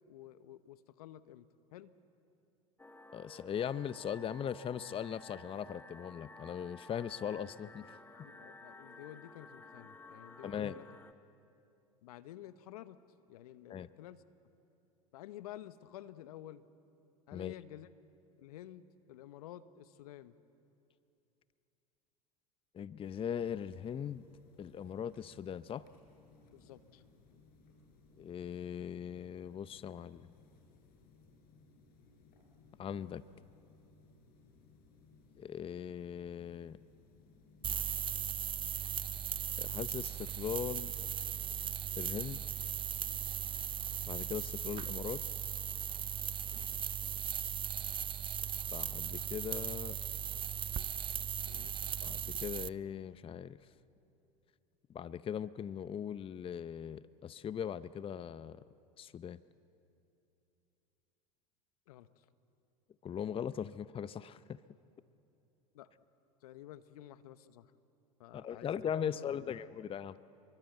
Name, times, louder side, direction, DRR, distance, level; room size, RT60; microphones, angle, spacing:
voice 1, 0.0-1.5 1.7-1.9 8.1-10.9 12.0-13.0 13.3-14.2 15.1-16.6 17.3-17.9 18.4-20.3 26.5-27.0 51.5-51.7 61.9-62.1 65.7-65.9 66.4-67.7 68.2-69.6, left 13 dB, 75° left, 14 dB, 1.0 m, -51 dB
sound 1, 2.8-11.1, left 2 dB, 10° left, 1.4 m, -54 dB
voice 2, 3.1-7.8 10.4-10.8 13.7-13.9 17.3-17.5 22.7-24.3 24.6-25.8 28.2-30.3 32.8-33.2 35.4-36.8 39.6-40.9 42.0-42.4 44.1-45.2 48.7-50.0 52.0-53.6 54.9-58.6 59.0-59.4 63.0-64.6 68.3-70.2, left 8 dB, 30° left, 16 dB, 0.7 m, -39 dB
sound 2, 23.0-42.4, left 3 dB, 50° left, 5.3 m, -63 dB
sound 3, 37.6-52.7, right 9 dB, 25° right, 0.5 m, -38 dB
28.0 x 23.0 x 8.1 m, 2.8 s
hypercardioid pair, 80°, 19 cm